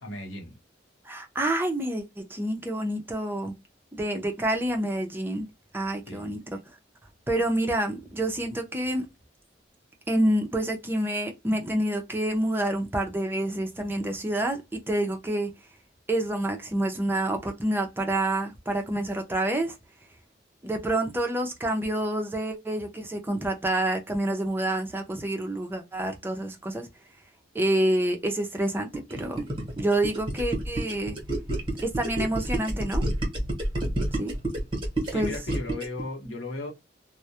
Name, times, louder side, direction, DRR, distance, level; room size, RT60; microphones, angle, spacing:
voice 1, 0.0-0.6 6.1-6.4 35.0-36.7, left 2 dB, 85° left, 0.8 m, -36 dB
voice 2, 1.0-3.5 3.9-5.5 5.7-6.4 7.3-9.1 10.1-15.5 16.1-19.8 20.6-26.9 27.5-29.4 29.8-31.1 31.8-33.0 34.2-34.3 35.1-35.3 36.3-36.4, right 1 dB, 10° right, 0.4 m, -28 dB
Gurgling, 28.9-36.0, right 1 dB, 25° right, 1.0 m, -29 dB
2.2 x 2.0 x 2.7 m
head